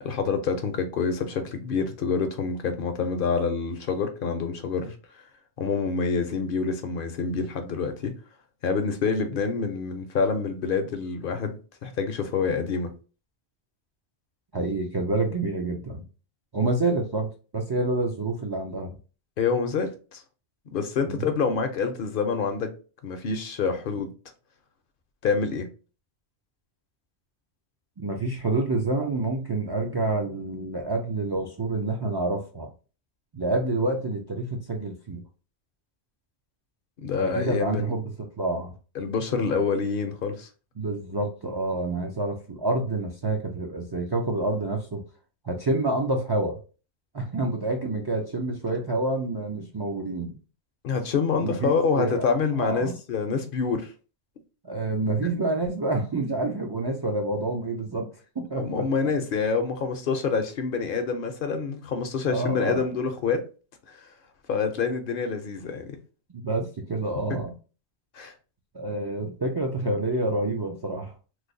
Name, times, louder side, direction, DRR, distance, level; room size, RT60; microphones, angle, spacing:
voice 1, 0.0-4.9 5.6-8.1 8.6-12.9 19.4-20.2 20.7-22.7 23.0-24.1 25.2-25.7 37.0-37.9 39.0-40.5 50.8-53.9 58.5-63.4 63.9-64.1 64.5-66.0 67.3-67.4 68.1-68.3, left 5 dB, 60° left, 0.7 m, -27 dB
voice 2, 14.5-16.1 16.5-19.0 21.1-21.3 28.0-32.7 33.3-35.2 37.2-38.0 38.4-38.7 40.8-45.0 45.4-46.6 47.1-50.3 51.4-52.2 52.6-52.9 54.6-58.7 62.3-62.8 66.3-67.5 68.7-71.1, right 2 dB, 40° right, 0.3 m, -28 dB
3.1 x 2.0 x 3.8 m
omnidirectional pair, 1.1 m